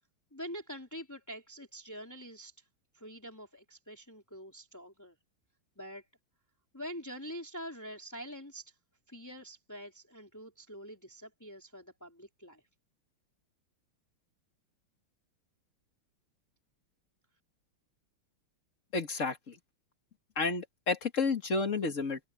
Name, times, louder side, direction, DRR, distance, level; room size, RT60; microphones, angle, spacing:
voice 1, 0.3-2.6 2.9-5.1 5.8-6.1 6.7-8.7 9.1-12.6, equal, 10° left, 3.8 m, -45 dB
voice 2, 18.9-19.5 20.4-22.2, left 4 dB, 40° left, 2.2 m, -31 dB
omnidirectional pair, 2.3 m